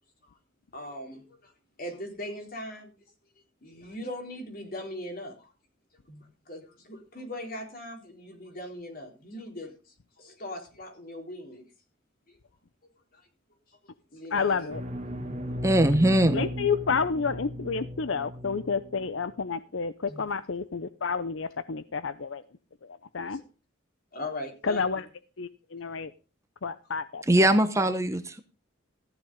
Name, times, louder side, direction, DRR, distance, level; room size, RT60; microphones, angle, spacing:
voice 1, 0.7-1.5 1.8-2.9 3.6-5.5 6.1-11.6 12.3-12.4 13.1-13.3 13.7-13.8 14.1-14.7 15.5-15.6 20.1-20.3 23.2-23.4 24.1-24.9 26.8-26.9, left 1 dB, 45° left, 4 dB, 4.0 m, -40 dB
voice 2, 14.3-14.8 16.3-22.4 23.1-23.4 24.6-25.0 25.4-26.1 26.6-27.2, left 5 dB, 75° left, 14 dB, 0.7 m, -30 dB
sound 1, 14.7-19.2, equal, 35° right, 2.0 m, -36 dB
voice 3, 15.6-16.5 27.3-28.4, right 1 dB, 15° right, 10 dB, 0.9 m, -21 dB
14.5 x 10.5 x 3.8 m, 0.34 s
head